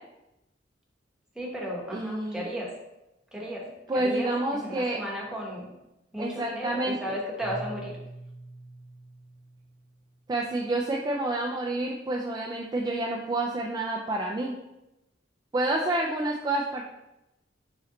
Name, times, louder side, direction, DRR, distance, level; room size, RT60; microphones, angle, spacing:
voice 1, 1.3-2.7 3.3-5.7 6.1-7.9, equal, 5° right, -3 dB, 1.0 m, -35 dB
voice 2, 1.9-2.4 3.9-5.0 6.2-7.0 10.3-14.5 15.5-16.8, right 2 dB, 20° right, -1 dB, 0.3 m, -28 dB
Keyboard (musical), 7.4-10.3, right 1 dB, 65° left, 1.2 m, -44 dB
4.1 x 3.1 x 3.8 m, 0.93 s
head